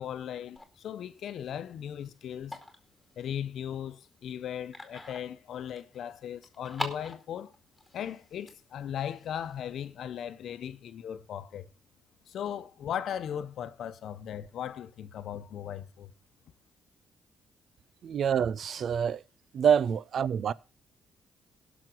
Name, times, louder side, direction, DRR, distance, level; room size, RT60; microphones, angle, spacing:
voice 1, 0.0-2.6 3.2-7.5 7.9-11.7 12.3-16.1, left 9 dB, 70° left, 0.9 m, -37 dB
sound 1, 0.5-10.0, left 2 dB, 10° left, 2.3 m, -45 dB
voice 2, 18.0-19.2 19.5-20.5, right 8 dB, 60° right, 0.5 m, -26 dB
17.0 x 6.2 x 4.6 m
cardioid pair, 90°, 0 cm